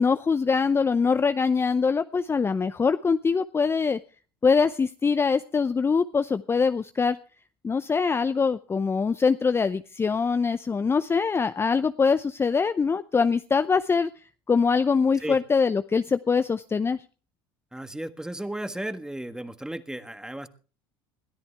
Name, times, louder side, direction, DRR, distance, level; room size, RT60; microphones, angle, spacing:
voice 1, 0.0-4.0 4.4-7.2 7.6-14.1 14.5-17.0, left 5 dB, 20° left, 12 dB, 0.6 m, -23 dB
voice 2, 17.7-20.5, right 1 dB, 5° right, 11 dB, 1.5 m, -34 dB
21.5 x 13.5 x 3.4 m, 0.38 s
hypercardioid pair, 80°, 12 cm